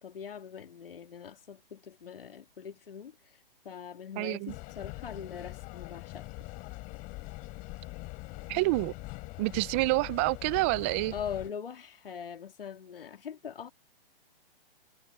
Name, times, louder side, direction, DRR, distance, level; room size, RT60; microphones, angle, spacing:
voice 1, 0.0-3.4 3.6-6.3 11.1-13.7, left 8 dB, 70° left, 2.7 m, -42 dB
voice 2, 4.2-4.5 8.5-8.9 9.4-11.1, right 24 dB, 15° right, 0.3 m, -28 dB
sound 1, 4.5-11.5, left 23 dB, 30° left, 5.0 m, -43 dB
hypercardioid pair, 135°, 29 cm